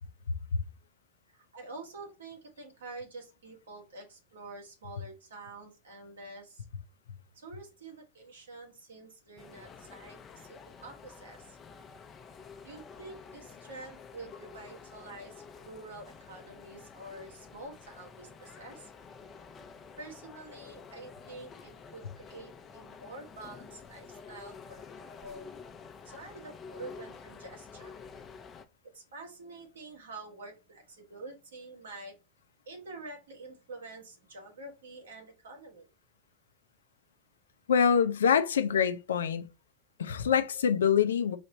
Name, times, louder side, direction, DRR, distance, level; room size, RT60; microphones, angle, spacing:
voice 1, 1.3-6.6 7.4-11.6 12.6-18.9 20.0-25.5 26.1-27.9 28.9-32.2 32.7-35.9, right 2 dB, 85° right, 1.8 m, -47 dB
sound 1, 9.4-28.7, left 5 dB, 30° left, 0.7 m, -50 dB
voice 2, 37.7-39.5 40.0-41.4, left 7 dB, 80° left, 0.5 m, -25 dB
4.1 x 3.2 x 3.9 m
hypercardioid pair, 90°, 0 cm